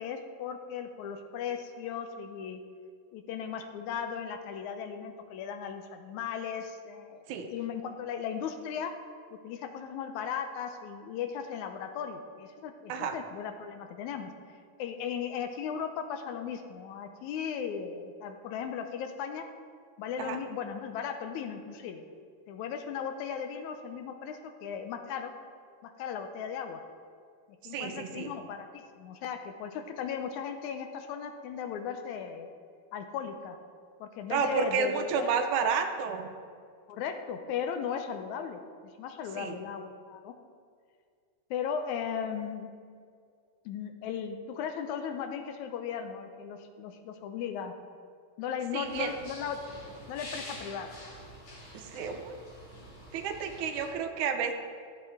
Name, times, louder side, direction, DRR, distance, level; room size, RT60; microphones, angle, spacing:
voice 1, 0.0-2.6 3.1-8.9 9.3-19.5 20.0-22.0 22.5-25.3 25.8-26.8 27.6-32.5 32.9-33.6 34.0-35.5 36.9-38.6 39.0-40.3 41.5-42.7 43.7-47.7 48.4-49.6 50.1-51.0, left 7 dB, 80° left, 7 dB, 2.0 m, -37 dB
voice 2, 27.7-28.3 34.3-36.3 39.4-39.6 48.7-49.1 51.7-52.4 53.1-54.5, right 6 dB, 85° right, 5 dB, 2.1 m, -31 dB
sound 1, 48.8-53.9, left 1 dB, 60° left, 3.7 m, -47 dB
14.0 x 7.6 x 3.6 m, 2.1 s
omnidirectional pair, 3.5 m